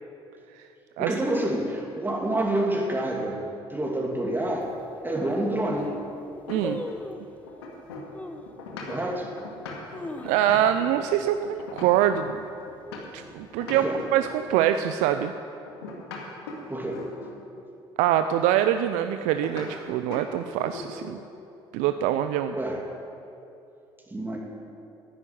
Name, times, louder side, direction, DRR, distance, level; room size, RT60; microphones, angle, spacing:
voice 1, 1.0-3.4 3.7-4.7 5.0-5.9 8.8-9.3 13.7-14.0 16.7-17.0 22.5-22.8 24.1-24.4, right 1 dB, 15° right, -1 dB, 2.7 m, -28 dB
sound 1, 4.6-4.7 5.3-5.4 5.6-6.0 6.6-7.4 8.1-8.5 9.1-9.2 9.7-10.8 11.1-11.2 11.5-11.9 12.3-12.7 13.3-14.1 14.3-14.4, left 1 dB, 10° left, 1.1 m, -38 dB
sound 2, 5.2-7.2 7.5-13.3 13.6-14.8 15.7-17.4 19.4-19.7 20.1-20.3 20.6-21.2, left 3 dB, 90° left, 2.1 m, -40 dB
voice 2, 6.5-6.8 10.2-12.3 13.1-15.3 18.0-21.2 21.7-22.6, right 11 dB, 75° right, 9 dB, 0.5 m, -24 dB
11.5 x 9.9 x 9.3 m, 2.7 s
hypercardioid pair, 55°, 13 cm